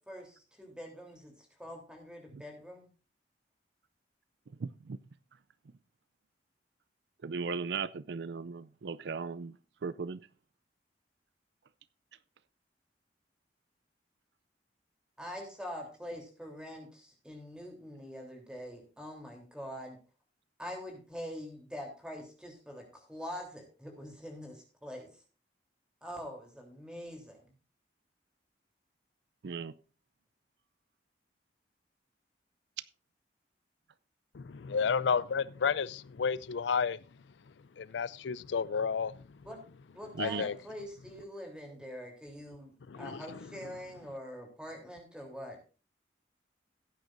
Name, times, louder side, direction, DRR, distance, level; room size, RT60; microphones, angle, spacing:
voice 1, 0.1-1.3 1.6-2.9 15.2-20.0 20.6-25.1 26.0-27.5 39.4-39.6 39.9-45.6, equal, 5° right, 3.3 m, -44 dB
voice 2, 4.6-5.0 7.2-9.6 9.8-10.3 29.4-29.7 40.1-40.4, right 5 dB, 70° right, 0.4 m, -37 dB
voice 3, 34.3-37.0 37.8-39.2 40.2-40.6 42.9-43.2, left 6 dB, 80° left, 0.4 m, -31 dB
17.0 x 9.2 x 2.6 m
head